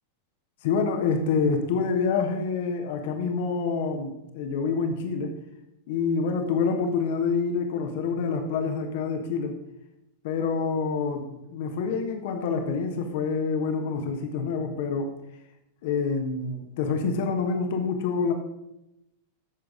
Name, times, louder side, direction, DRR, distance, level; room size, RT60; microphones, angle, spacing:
voice 1, 0.6-5.3 5.9-9.6 10.2-15.2 15.8-18.3, left 5 dB, 50° left, 5 dB, 1.3 m, -27 dB
15.5 x 6.6 x 3.8 m, 0.87 s
figure-of-eight pair, 90°, 0 cm